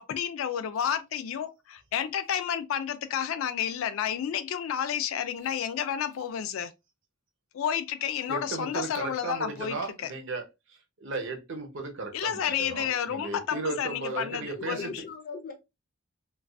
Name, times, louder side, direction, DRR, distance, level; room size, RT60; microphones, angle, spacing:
voice 1, 0.0-6.7 7.5-10.1 12.1-15.0, left 8 dB, 75° left, 0.3 m, -31 dB
voice 2, 8.3-10.4 11.0-14.9, right 3 dB, 65° right, 0.7 m, -35 dB
voice 3, 12.4-12.7 13.2-14.3 14.6-15.5, left 5 dB, 45° left, 0.7 m, -40 dB
2.3 x 2.3 x 2.3 m
head